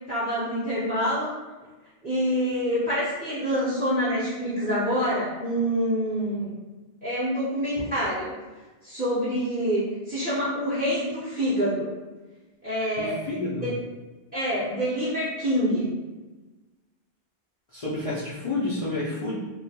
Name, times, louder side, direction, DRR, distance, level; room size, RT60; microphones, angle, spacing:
voice 1, 0.1-1.3 2.0-6.5 7.0-8.3 8.8-11.9 12.6-13.1 13.6-13.8 14.3-15.9, equal, 15° right, -11 dB, 0.4 m, -26 dB
voice 2, 13.0-13.7 17.7-19.3, left 2 dB, 65° left, -8 dB, 0.3 m, -29 dB
2.2 x 2.1 x 2.7 m, 1.2 s
omnidirectional pair, 1.1 m